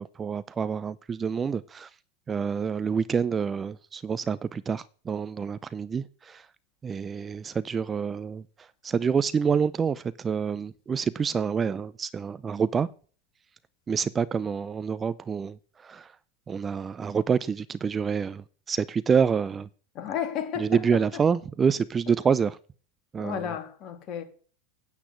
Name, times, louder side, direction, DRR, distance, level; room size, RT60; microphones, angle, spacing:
voice 1, 0.0-1.9 2.3-6.5 6.8-8.4 8.8-12.9 13.9-16.1 16.5-19.7 20.6-22.6 23.1-23.4, right 6 dB, 20° right, 0.6 m, -27 dB
voice 2, 19.9-20.8 23.2-24.2, left 9 dB, 40° left, 2.7 m, -32 dB
9.9 x 8.4 x 8.1 m
figure-of-eight pair, 85°, 0 cm